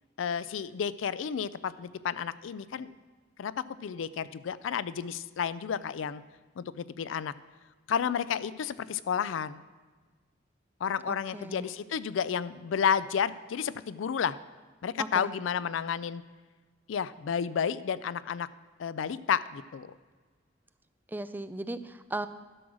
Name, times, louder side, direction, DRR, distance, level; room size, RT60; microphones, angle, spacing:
voice 1, 0.2-2.9 3.4-6.2 6.6-7.3 7.9-9.6 10.8-14.4 14.8-16.2 16.9-18.5 18.8-19.9, left 7 dB, 85° left, 16 dB, 0.4 m, -31 dB
voice 2, 11.1-11.7 15.0-15.3 21.1-22.3, right 2 dB, 10° right, 11 dB, 0.4 m, -37 dB
12.0 x 6.2 x 6.3 m, 1.4 s
head